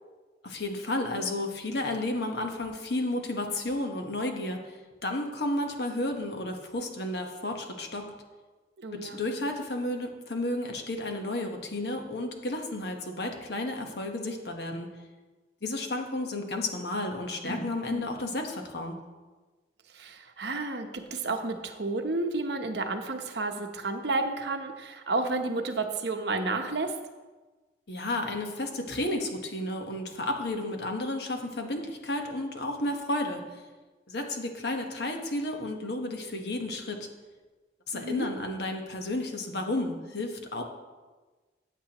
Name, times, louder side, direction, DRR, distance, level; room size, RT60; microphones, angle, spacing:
voice 1, 0.4-8.0 8.9-14.9 15.6-19.0 27.9-33.6 34.1-37.1 37.9-40.6, left 1 dB, 60° left, 3 dB, 1.2 m, -32 dB
voice 2, 8.8-9.2 17.9-18.1 19.9-26.9 37.9-38.3, right 3 dB, 60° right, 5 dB, 0.9 m, -31 dB
14.5 x 8.2 x 3.0 m, 1.3 s
head